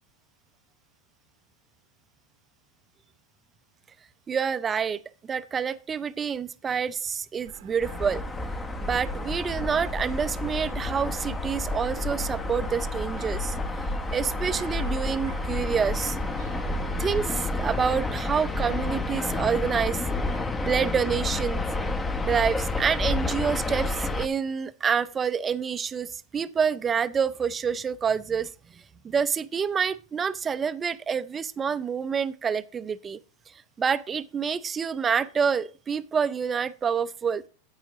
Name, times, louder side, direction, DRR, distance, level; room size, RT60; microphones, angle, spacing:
voice 1, 4.3-8.2 8.8-13.6 14.1-16.2 16.4-20.0 20.3-21.6 22.2-28.5 29.0-33.2 33.8-37.5, right 6 dB, 20° right, 0.5 m, -27 dB
Dog, 7.3-20.6, right 11 dB, 70° right, 0.9 m, -45 dB
sound 1, 7.8-24.3, left 2 dB, 15° left, 0.7 m, -30 dB
10.5 x 8.3 x 3.0 m
hypercardioid pair, 125°, 0 cm